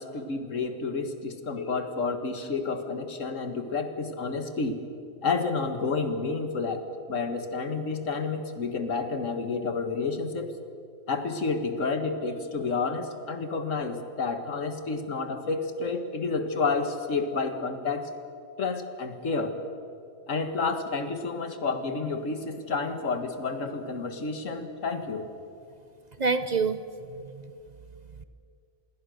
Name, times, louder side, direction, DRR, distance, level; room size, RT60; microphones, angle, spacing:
voice 1, 0.0-4.8 5.2-10.5 11.1-18.1 18.6-19.6 20.3-25.3, left 4 dB, 90° left, 8 dB, 2.1 m, -30 dB
voice 2, 26.2-27.5 28.2-28.3, right 4 dB, 40° right, 12 dB, 0.8 m, -28 dB
26.5 x 21.0 x 6.5 m, 2.5 s
omnidirectional pair, 1.3 m